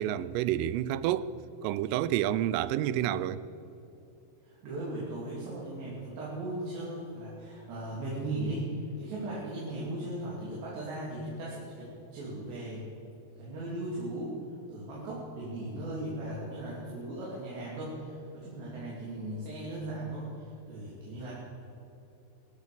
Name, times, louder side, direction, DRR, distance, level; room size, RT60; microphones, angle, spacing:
voice 1, 0.0-1.3 1.6-3.4, right 12 dB, 85° right, 3.2 m, -29 dB
voice 2, 4.4-12.8 13.4-14.3 14.7-21.3, right 1 dB, 60° right, 5.0 m, -37 dB
22.5 x 12.5 x 5.2 m
omnidirectional pair, 5.7 m